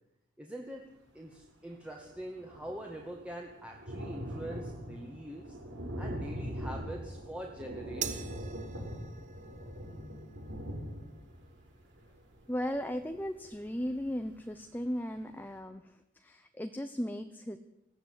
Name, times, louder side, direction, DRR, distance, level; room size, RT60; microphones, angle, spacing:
voice 1, 0.4-0.8 1.1-5.6 6.0-8.5, right 1 dB, 5° right, 0 dB, 2.1 m, -44 dB
Thunder, 1.4-1.5 1.7-14.3 14.8-14.9 15.2-15.3, equal, 70° right, 6.5 m, -42 dB
sound 1, 8.0-14.6, right 9 dB, 40° right, 1.6 m, -47 dB
voice 2, 12.5-17.6, equal, 10° left, 7 dB, 1.0 m, -36 dB
20.5 x 15.5 x 9.7 m, 0.91 s
head